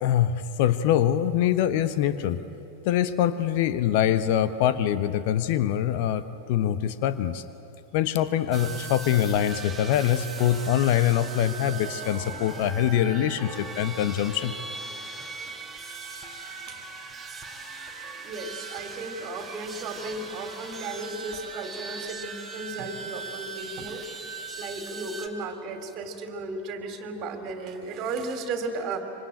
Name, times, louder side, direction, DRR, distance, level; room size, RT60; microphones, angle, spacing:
voice 1, 0.0-2.4 2.8-6.2 6.5-7.4 7.9-14.5, left 11 dB, 50° left, 12 dB, 0.9 m, -24 dB
sound 1, 8.5-25.3, right 4 dB, 10° right, 2.3 m, -39 dB
voice 2, 18.1-24.0 24.6-29.0, right 3 dB, 35° right, 7 dB, 2.9 m, -35 dB
26.0 x 24.5 x 8.8 m, 2.9 s
figure-of-eight pair, 90°, 0 cm